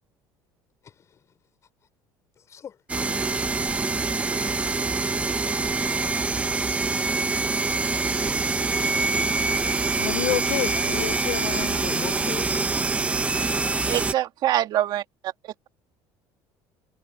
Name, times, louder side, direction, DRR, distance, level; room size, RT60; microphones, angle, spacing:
voice 1, 0.8-1.2 2.4-2.8 4.3-4.9 11.7-13.0, left 8 dB, 35° left, 6.3 m, -40 dB
sound 1, 2.9-14.1, right 3 dB, 15° right, 1.1 m, -25 dB
voice 2, 10.0-12.0, left 18 dB, 80° left, 1.1 m, -29 dB
voice 3, 13.9-15.5, right 13 dB, 55° right, 2.5 m, -25 dB
cardioid pair, 140°, 9 cm